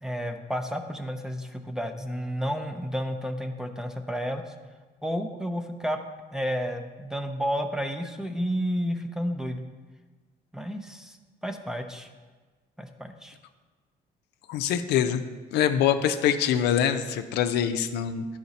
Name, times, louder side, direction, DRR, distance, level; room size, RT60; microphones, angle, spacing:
voice 1, 0.0-4.4 5.0-6.0 6.3-9.6 10.5-11.2 11.4-12.1 12.8-13.3, equal, 5° right, 6 dB, 0.6 m, -31 dB
voice 2, 14.5-15.2 15.5-18.2, left 9 dB, 80° left, 8 dB, 0.5 m, -24 dB
10.5 x 4.9 x 4.1 m, 1.3 s
cardioid pair, 110°, 17 cm